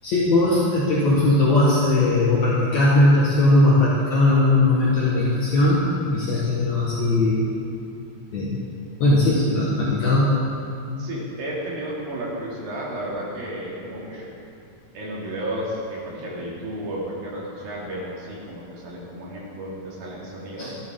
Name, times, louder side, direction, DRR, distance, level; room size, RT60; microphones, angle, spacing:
voice 1, 0.0-7.5 8.3-8.6 9.0-10.4 20.6-20.7, left 2 dB, 60° left, -6 dB, 2.6 m, -19 dB
voice 2, 11.0-14.3 14.9-20.8, right 1 dB, 80° right, -5 dB, 4.5 m, -32 dB
17.0 x 12.5 x 3.8 m, 2.5 s
omnidirectional pair, 4.1 m